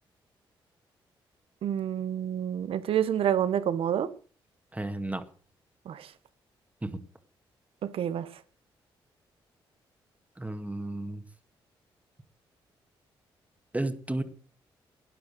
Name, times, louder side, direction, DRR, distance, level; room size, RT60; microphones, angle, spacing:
voice 1, 1.6-4.1 5.8-6.1 7.8-8.4, right 9 dB, 75° right, 1.2 m, -28 dB
voice 2, 4.7-5.2 6.8-7.0 10.4-11.2 13.7-14.2, right 1 dB, 15° right, 1.9 m, -32 dB
12.5 x 9.7 x 6.4 m
supercardioid pair, 60°, 10 cm